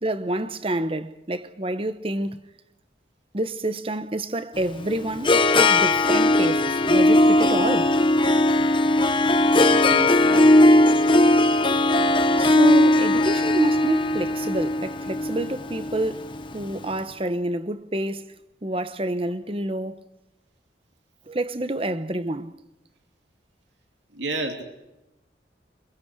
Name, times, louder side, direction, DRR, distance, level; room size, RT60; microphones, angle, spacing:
voice 1, 0.0-2.4 3.3-8.0 12.4-18.3 18.6-20.0 21.3-22.5, right 1 dB, 30° right, 1.1 m, -28 dB
Harp, 4.6-16.7, left 1 dB, 30° left, 1.0 m, -19 dB
voice 2, 9.6-10.9 24.1-24.6, right 2 dB, 85° right, 3.2 m, -32 dB
25.5 x 22.5 x 4.7 m
head